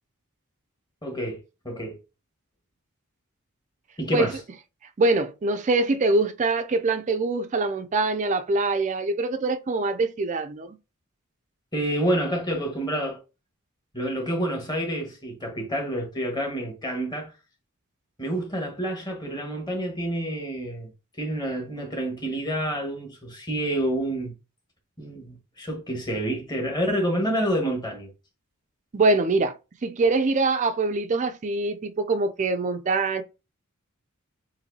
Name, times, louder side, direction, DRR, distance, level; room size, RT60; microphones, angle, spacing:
voice 1, 1.0-1.4 1.6-2.0 4.0-4.4 11.7-13.2 13.9-17.3 18.2-20.9 21.2-24.3 25.0-28.1, right 1 dB, 20° left, 1.6 m, -28 dB
voice 2, 5.0-10.8 28.9-29.5 29.8-33.2, right 3 dB, 35° right, 0.4 m, -24 dB
7.1 x 2.7 x 2.8 m
head